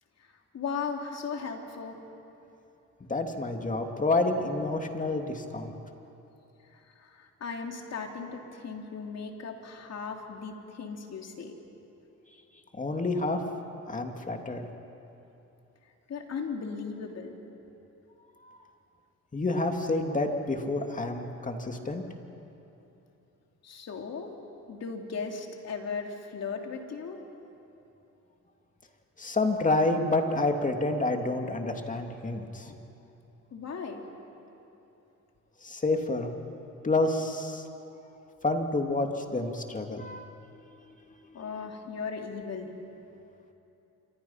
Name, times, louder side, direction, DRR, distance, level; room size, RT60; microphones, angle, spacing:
voice 1, 0.2-2.0 6.7-11.6 16.1-17.3 23.6-24.3 24.7-27.2 33.5-34.0 41.3-42.7, left 5 dB, 55° left, 2 dB, 3.1 m, -37 dB
voice 2, 3.1-5.7 12.7-13.4 13.9-14.7 18.4-18.6 19.3-22.0 29.2-32.8 35.6-36.3 36.8-37.7 38.4-40.2 41.3-41.4, left 2 dB, 25° left, 4 dB, 2.5 m, -29 dB
27.5 x 25.0 x 5.8 m, 3.0 s
cardioid pair, 90°, 30 cm